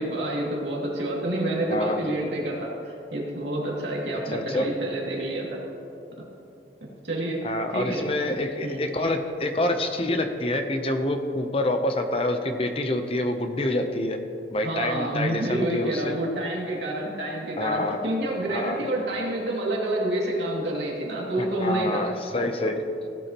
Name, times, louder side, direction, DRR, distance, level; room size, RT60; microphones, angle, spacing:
voice 1, 0.0-5.6 6.2-6.3 7.0-7.4 7.7-8.1 8.6-8.8 14.6-22.0, right 1 dB, 80° right, -3 dB, 2.4 m, -28 dB
voice 2, 4.3-4.7 7.4-14.2 14.5-16.1 17.6-18.0 18.5-18.8 21.4-22.8, left 1 dB, 30° left, 6 dB, 0.7 m, -27 dB
17.0 x 8.3 x 3.0 m, 2.8 s
head